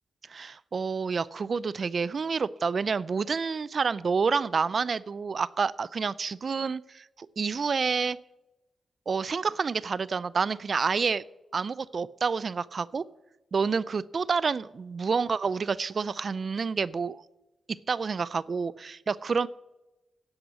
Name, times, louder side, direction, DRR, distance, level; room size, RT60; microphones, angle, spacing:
voice 1, 0.3-8.2 9.1-11.2 11.5-13.0 13.5-17.2 17.9-19.5, right 5 dB, 55° right, 20 dB, 0.4 m, -28 dB
10.0 x 7.9 x 8.2 m, 1.0 s
cardioid pair, 70°, 0 cm